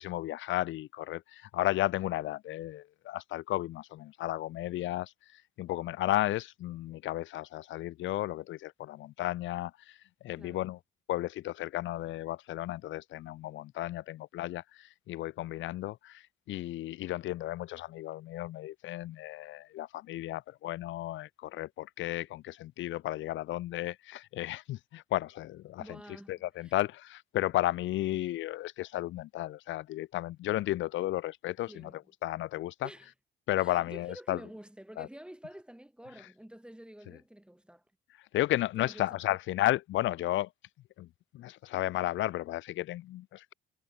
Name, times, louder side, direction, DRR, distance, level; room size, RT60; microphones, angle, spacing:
voice 1, 0.0-10.0 10.2-10.8 11.1-26.0 26.3-31.9 32.2-32.9 33.5-34.4 35.0-35.1 38.3-40.5 41.0-41.1 41.3-43.5, left 15 dB, 75° left, 0.5 m, -33 dB
voice 2, 10.4-10.7 25.8-26.8 31.7-32.0 32.8-33.1 33.6-37.8 38.8-39.4, right 1 dB, 5° right, 3.0 m, -49 dB
cardioid pair, 90°, 20 cm